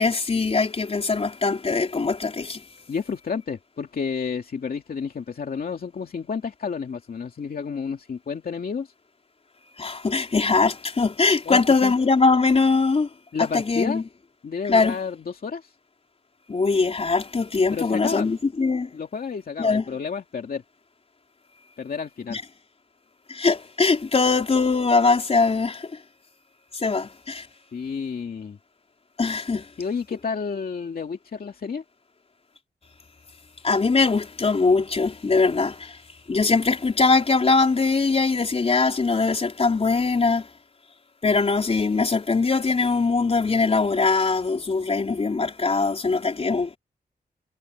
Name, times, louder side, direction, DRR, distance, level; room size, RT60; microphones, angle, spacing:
voice 1, 0.0-2.6 9.8-13.1 13.4-14.0 14.7-15.0 16.5-18.9 19.6-19.8 22.3-22.4 23.3-25.9 26.7-27.5 29.2-29.7 33.6-36.0 36.3-40.5 41.2-46.8, left 4 dB, 40° left, 4.4 m, -21 dB
voice 2, 2.9-8.9 11.5-11.9 13.3-14.0 14.4-15.7 17.7-18.3 18.9-20.6 21.8-22.4 27.7-28.6 29.8-31.8, left 5 dB, 65° left, 2.5 m, -30 dB
wide cardioid pair, 165°, 17 cm